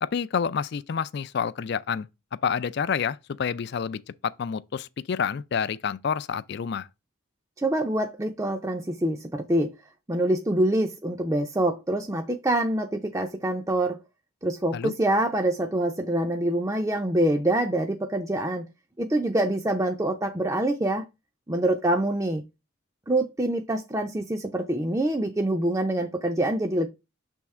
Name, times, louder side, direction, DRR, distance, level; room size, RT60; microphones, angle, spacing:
voice 1, 0.0-2.1 2.4-6.9 14.7-14.9, left 6 dB, 50° left, 0.3 m, -28 dB
voice 2, 7.6-9.7 10.1-14.0 14.4-18.6 19.0-21.1 21.5-22.4 23.1-26.9, right 1 dB, 15° right, 0.5 m, -25 dB
7.0 x 3.6 x 4.3 m
head